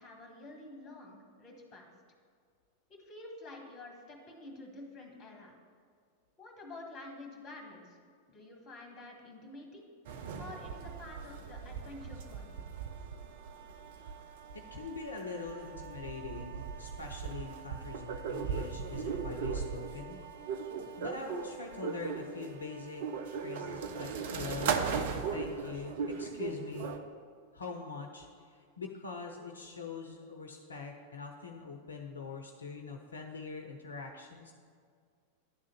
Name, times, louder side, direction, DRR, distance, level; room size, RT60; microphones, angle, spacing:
voice 1, 0.0-1.9 2.9-5.6 6.4-8.0 8.3-9.8 10.4-12.6 20.7-20.9, left 2 dB, 25° left, 1 dB, 1.7 m, -49 dB
sound 1, 10.1-27.0, right 6 dB, 55° right, 0.6 m, -38 dB
voice 2, 14.5-20.2 21.0-23.0 23.4-24.8 25.3-26.9 27.5-34.5, left 4 dB, 75° left, 3 dB, 0.6 m, -43 dB
10.5 x 3.7 x 7.3 m, 2.1 s
figure-of-eight pair, 90°, 0 cm